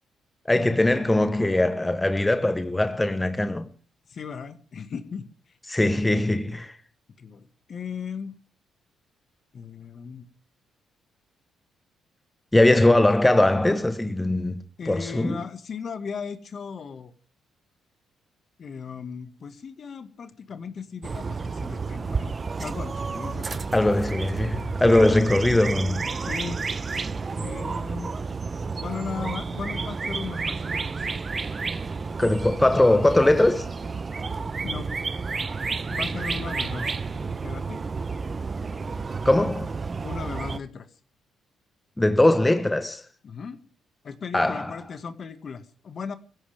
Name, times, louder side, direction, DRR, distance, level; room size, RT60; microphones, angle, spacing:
voice 1, 0.4-3.7 5.7-6.8 12.5-15.4 23.7-26.0 32.2-33.7 39.2-39.8 42.0-43.0 44.3-44.7, left 1 dB, 10° left, 1.2 m, -21 dB
voice 2, 4.1-6.2 7.2-8.4 9.5-10.3 14.8-17.1 18.6-22.3 22.6-23.9 26.2-26.6 27.4-28.1 28.8-31.2 34.6-34.9 35.9-37.8 40.0-40.9 43.2-43.6 44.0-46.1, left 6 dB, 50° left, 1.9 m, -37 dB
sound 1, 21.0-40.6, right 4 dB, 35° right, 0.9 m, -31 dB
22.0 x 16.0 x 3.6 m
cardioid pair, 90°, 0 cm